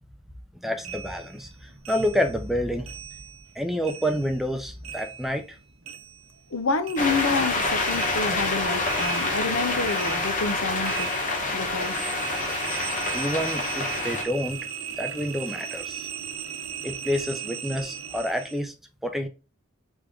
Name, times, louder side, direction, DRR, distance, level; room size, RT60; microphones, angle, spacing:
voice 1, 0.6-2.9 3.5-5.6 13.1-16.1 16.8-18.7 19.0-19.3, equal, ahead, 0.5 m, -28 dB
sound 1, 0.8-3.6 3.8-6.6 6.8-18.6, right 8 dB, 85° right, 0.6 m, -37 dB
voice 2, 6.5-12.0, left 4 dB, 85° left, 0.7 m, -28 dB
sound 2, 7.0-14.2, left 2 dB, 40° left, 0.9 m, -27 dB
3.5 x 3.5 x 3.7 m
head